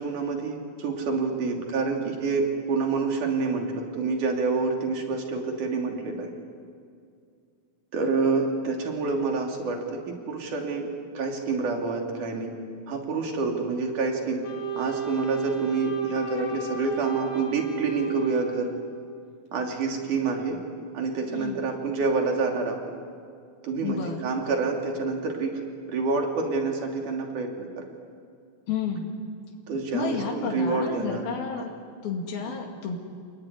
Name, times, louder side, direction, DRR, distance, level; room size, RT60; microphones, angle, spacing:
voice 1, 0.0-6.3 7.9-12.5 12.9-14.4 14.8-18.7 19.5-20.6 20.9-22.8 23.6-25.6 25.9-27.9 29.7-31.2 31.6-31.7 32.5-32.6, right 4 dB, 60° right, 2 dB, 4.4 m, -27 dB
Wind instrument woodwind instrument, 14.4-19.0, right 5 dB, 55° left, 5.3 m, -33 dB
voice 2, 21.3-21.6 23.8-24.3 28.7-29.1 29.9-31.7 32.0-33.0, left 6 dB, 80° left, 0 dB, 4.1 m, -31 dB
29.0 x 20.5 x 9.8 m, 2.3 s
omnidirectional pair, 4.2 m